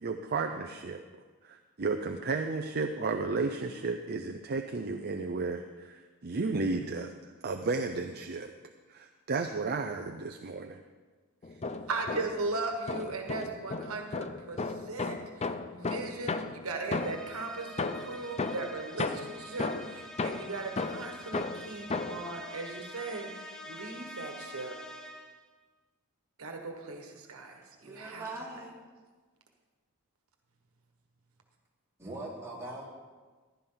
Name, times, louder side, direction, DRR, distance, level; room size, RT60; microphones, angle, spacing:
voice 1, 0.0-1.0 1.4-7.1 7.4-8.5 8.9-10.8, right 3 dB, 45° right, 0.6 m, -33 dB
sound 1, 11.4-12.5 12.9-17.4 17.8-22.3, left 3 dB, 30° left, 0.5 m, -35 dB
voice 2, 11.6-24.7 26.4-28.3, right 3 dB, 75° right, 1.5 m, -38 dB
sound 2, 17.0-25.5, equal, 5° left, 1.1 m, -46 dB
voice 3, 27.8-28.7 32.0-32.9, right 2 dB, 15° right, 3.1 m, -41 dB
15.0 x 11.5 x 3.9 m
head